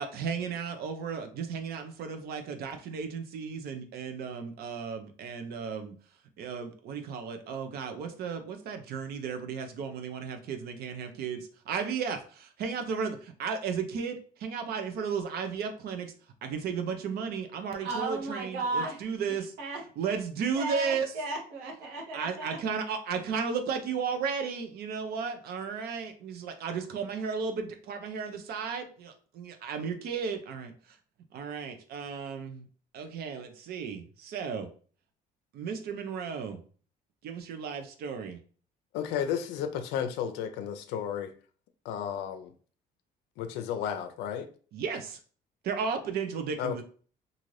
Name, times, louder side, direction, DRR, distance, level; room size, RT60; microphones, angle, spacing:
voice 1, 0.0-5.9 6.4-16.1 16.4-19.5 20.0-21.1 22.1-30.7 31.3-32.7 32.9-34.7 35.5-36.6 37.2-38.4 44.7-45.2 45.6-46.8, right 6 dB, 65° right, 0.5 m, -34 dB
voice 2, 17.7-19.0 19.6-19.8 20.5-22.6, right 2 dB, 85° right, 1.0 m, -34 dB
voice 3, 38.9-41.3 41.8-42.5 43.4-44.5 46.6-46.8, left 8 dB, 90° left, 0.4 m, -33 dB
2.5 x 2.5 x 3.1 m
cardioid pair, 110°, 17 cm